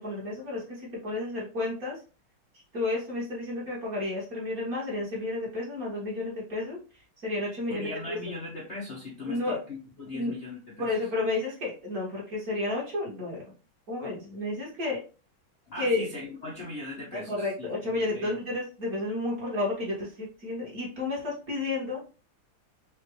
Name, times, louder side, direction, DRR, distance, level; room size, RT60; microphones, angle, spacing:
voice 1, 0.0-2.0 2.7-6.8 7.2-8.2 9.3-9.6 10.1-10.3 10.8-13.4 13.9-15.0 15.8-16.1 17.3-22.1, left 2 dB, 45° right, -5 dB, 2.0 m, -31 dB
voice 2, 7.7-11.0 15.7-18.4, left 2 dB, 40° left, -6 dB, 1.1 m, -39 dB
5.1 x 2.7 x 3.1 m, 0.35 s
omnidirectional pair, 2.4 m